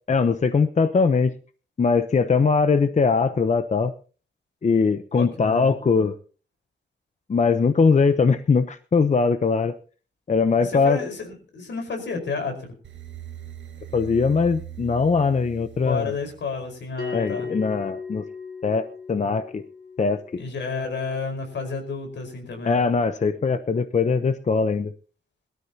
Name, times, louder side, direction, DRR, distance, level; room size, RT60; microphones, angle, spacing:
voice 1, 0.1-1.3 1.8-3.9 4.6-6.1 7.3-9.7 10.3-11.0 13.9-16.1 17.1-18.2 18.6-19.6 20.0-20.2 22.7-24.9, left 5 dB, 40° left, 10 dB, 0.9 m, -21 dB
voice 2, 5.1-5.7 10.6-12.8 15.8-17.5 20.4-22.8, left 4 dB, 80° left, 5 dB, 4.9 m, -31 dB
sound 1, 12.8-16.9, right 11 dB, 90° right, 1.7 m, -40 dB
Bell, 17.0-22.0, left 5 dB, 60° left, 5.6 m, -38 dB
21.5 x 13.0 x 2.9 m, 0.37 s
wide cardioid pair, 125°, 18 cm